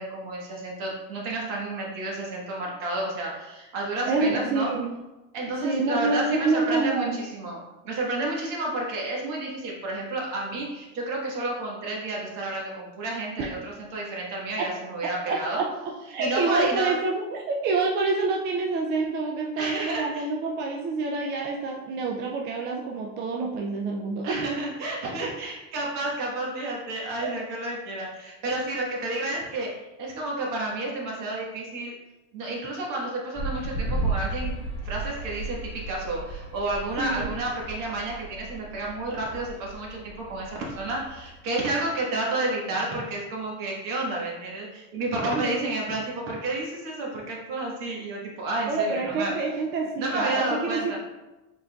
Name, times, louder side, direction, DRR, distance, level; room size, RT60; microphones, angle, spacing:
voice 1, 0.0-4.7 5.3-15.6 16.2-17.0 19.6-20.3 24.2-32.0 32.3-49.3 50.0-51.0, right 2 dB, 55° right, -2 dB, 1.5 m, -31 dB
voice 2, 4.1-4.9 5.5-7.2 13.4-13.5 15.3-24.4 25.2-25.3 27.2-27.3 37.0-37.4 45.3-45.6 48.7-51.0, right 3 dB, 30° right, 0 dB, 0.4 m, -27 dB
sound 1, 33.3-41.4, right 2 dB, 5° left, 1.0 m, -34 dB
4.6 x 3.9 x 2.3 m, 1.0 s
supercardioid pair, 125°, 39 cm